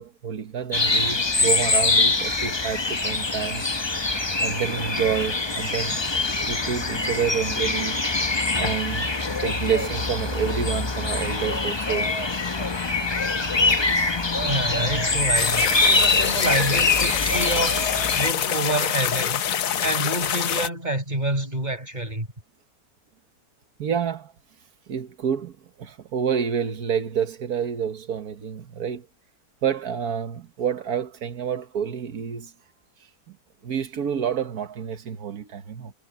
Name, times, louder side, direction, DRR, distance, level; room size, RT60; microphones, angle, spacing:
voice 1, 0.0-3.6 4.4-6.0 6.5-8.0 8.6-12.1 23.8-24.3 24.9-25.5 25.8-29.1 29.6-32.5 33.6-35.9, right 7 dB, 85° right, 1.7 m, -28 dB
sound 1, 0.7-18.3, left 3 dB, 20° left, 0.8 m, -24 dB
voice 2, 14.4-17.9 18.1-19.4 19.8-22.3, right 1 dB, 30° right, 5.5 m, -27 dB
sound 2, 15.4-20.7, left 9 dB, 65° left, 1.3 m, -26 dB
omnidirectional pair, 1.5 m